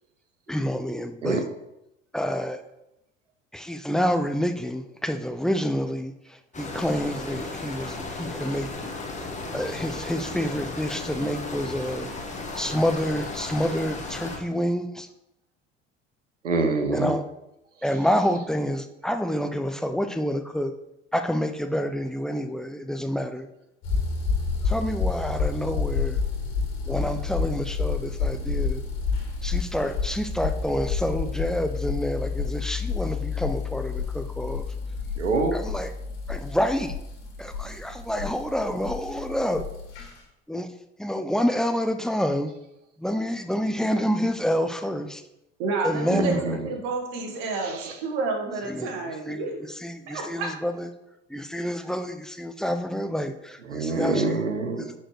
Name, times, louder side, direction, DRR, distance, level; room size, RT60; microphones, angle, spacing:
voice 1, 0.5-1.5 2.1-2.6 3.5-8.7 9.5-12.1 12.5-15.1 16.9-17.2 17.8-20.7 21.1-23.5 24.6-26.2 26.9-28.8 29.4-34.6 35.5-35.9 36.3-36.9 37.4-39.7 40.5-40.7 41.0-42.5 43.0-45.2 45.8-46.4 48.6-48.9 49.3-49.5 49.8-50.9 51.3-54.4 54.7-54.9, equal, ahead, 7 dB, 0.5 m, -28 dB
sound 1, 6.5-14.4, left 3 dB, 20° left, 1.5 m, -35 dB
voice 2, 16.4-17.1 35.2-35.5 46.1-46.6 47.8-47.9 53.7-54.9, right 3 dB, 85° right, 7 dB, 0.9 m, -25 dB
sound 2, 23.8-40.1, left 5 dB, 55° left, 2.1 m, -29 dB
voice 3, 45.6-49.6 50.1-50.5, right 3 dB, 60° right, 3 dB, 1.5 m, -30 dB
10.0 x 4.5 x 3.1 m, 0.86 s
figure-of-eight pair, 65°, 36 cm